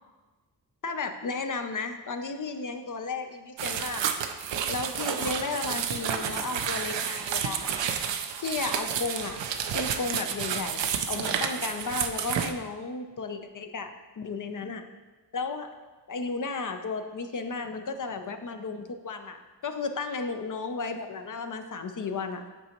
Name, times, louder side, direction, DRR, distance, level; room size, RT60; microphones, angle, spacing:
voice 1, 0.8-4.1 4.7-7.8 8.4-9.4 9.7-14.9 15.3-15.7 16.1-22.4, left 4 dB, 45° left, 7 dB, 0.7 m, -34 dB
sound 1, 3.6-12.5, right 8 dB, 90° right, 0.6 m, -30 dB
8.3 x 5.1 x 3.0 m, 1.2 s
cardioid pair, 60°, 42 cm